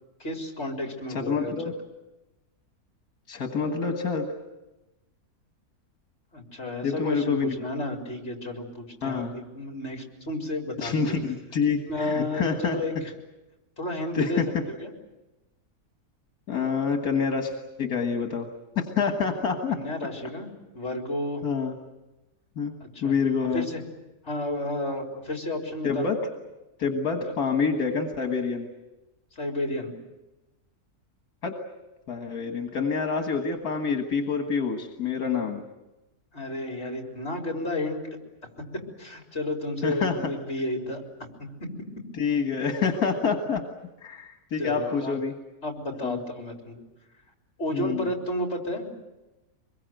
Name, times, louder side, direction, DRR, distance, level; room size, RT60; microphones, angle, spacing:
voice 1, 0.2-1.5 6.3-11.1 11.9-12.9 13.8-14.9 19.7-21.4 22.9-23.1 23.5-23.8 24.2-26.1 27.3-27.4 29.4-29.9 36.3-38.0 39.0-41.0 41.6-41.7 44.6-45.2 45.6-46.8 47.6-48.9, left 1 dB, 45° left, 2 dB, 4.1 m, -32 dB
voice 2, 1.1-1.7 3.3-4.3 6.8-7.6 9.0-9.3 10.8-12.8 14.1-14.5 16.5-18.5 18.8-19.8 21.4-21.7 22.6-22.8 23.0-23.7 25.8-26.2 26.8-28.7 31.4-31.6 32.1-35.6 39.8-40.2 42.1-43.6 44.0-45.3 46.0-46.2 47.7-48.1, left 5 dB, 80° left, 4 dB, 2.1 m, -27 dB
25.0 x 22.0 x 9.1 m, 1.0 s
omnidirectional pair, 1.6 m